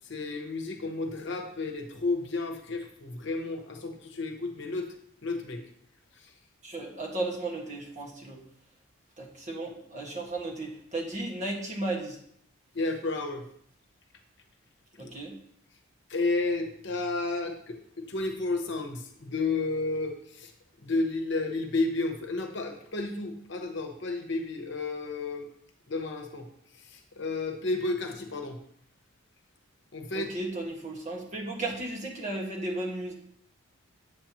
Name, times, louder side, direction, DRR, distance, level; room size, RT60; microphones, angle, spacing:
voice 1, 0.0-4.9 5.2-5.6 12.7-13.4 15.0-15.1 16.1-20.5 20.8-25.5 25.9-26.5 26.7-28.6 29.9-30.3, left 3 dB, 55° left, 4 dB, 1.0 m, -32 dB
voice 2, 6.6-8.4 9.2-12.2 15.0-15.4 30.1-33.1, right 2 dB, 35° right, -2 dB, 1.6 m, -34 dB
7.9 x 7.5 x 3.0 m, 0.65 s
head